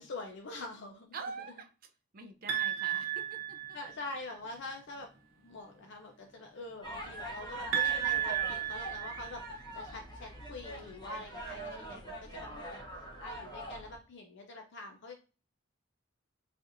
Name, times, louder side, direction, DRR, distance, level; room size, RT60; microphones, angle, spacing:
voice 1, 0.0-1.2 2.8-3.1 3.7-5.1 5.4-12.8 13.2-15.1, left 2 dB, 55° left, 0.5 m, -45 dB
voice 2, 1.1-1.7 2.1-3.6 12.3-12.7, right 4 dB, 45° right, 0.5 m, -45 dB
sound 1, 2.5-4.1 7.7-9.7, right 10 dB, 75° right, 0.9 m, -33 dB
sound 2, 6.8-14.0, right 1 dB, 20° left, 0.8 m, -43 dB
4.1 x 2.5 x 2.5 m
head